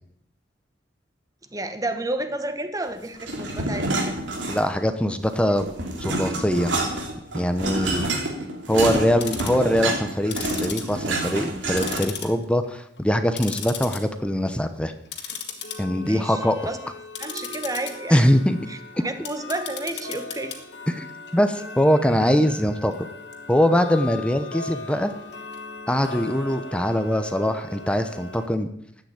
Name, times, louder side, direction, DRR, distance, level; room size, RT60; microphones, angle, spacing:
voice 1, 1.5-4.2 16.0-16.8 17.2-18.2 18.7-20.5, right 2 dB, 20° right, 8 dB, 1.3 m, -31 dB
sound 1, 3.2-4.9 5.2-12.3, right 2 dB, 90° right, 3.1 m, -28 dB
voice 2, 4.5-5.7 6.0-6.8 7.3-8.1 8.7-14.9 15.8-16.6 18.1-18.6 20.9-21.1 21.3-22.9 23.5-25.1 25.9-28.7, equal, 5° left, 9 dB, 0.8 m, -22 dB
Tick-tock, 9.0-9.6 10.2-11.5 11.8-12.6 13.0-14.0 14.4-14.6 15.0-28.5, left 5 dB, 65° left, 2.0 m, -37 dB
11.5 x 9.0 x 8.6 m, 0.73 s
head